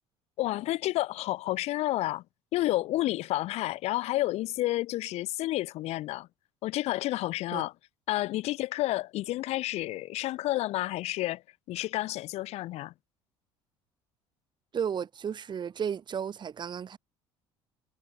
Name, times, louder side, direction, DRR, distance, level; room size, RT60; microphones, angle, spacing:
voice 1, 0.4-2.2 2.5-6.3 6.6-7.7 8.1-11.4 11.7-12.9, left 16 dB, 60° left, 1.9 m, -30 dB
voice 2, 14.7-17.0, right 7 dB, 40° right, 1.9 m, -33 dB
hypercardioid pair, 65°, 12 cm